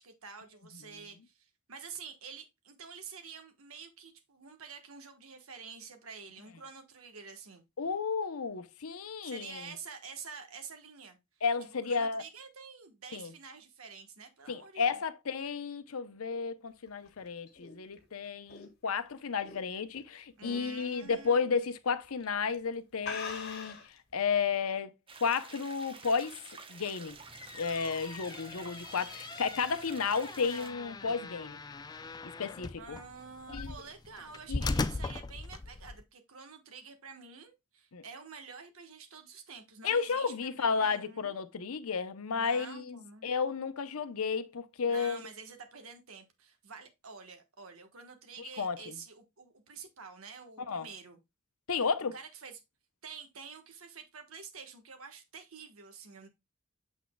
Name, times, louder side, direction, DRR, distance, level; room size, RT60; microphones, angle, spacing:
voice 1, 0.0-7.6 9.2-11.2 11.8-15.0 20.4-21.5 32.8-41.4 42.3-43.3 44.9-51.2 52.1-52.6 53.0-56.3, right 5 dB, 80° right, 1.2 m, -48 dB
voice 2, 7.8-9.6 11.4-12.2 13.1-13.3 14.5-23.8 24.1-24.9 25.2-26.4 26.7-27.2 27.6-31.6 32.2-33.0 33.5-33.7 34.5-34.6 37.9-38.0 39.8-45.2 48.4-48.9 50.7-50.9 51.7-52.1, left 5 dB, 85° left, 0.7 m, -32 dB
sound 1, 16.9-20.0 20.4-20.7 21.1-21.2 22.0-22.2 22.5-22.6 23.0-24.0, left 4 dB, 50° left, 1.6 m, -43 dB
sound 2, 25.1-30.7, right 4 dB, 25° right, 0.8 m, -50 dB
sound 3, 27.1-36.0, left 3 dB, 20° left, 0.4 m, -39 dB
7.0 x 6.2 x 2.2 m
head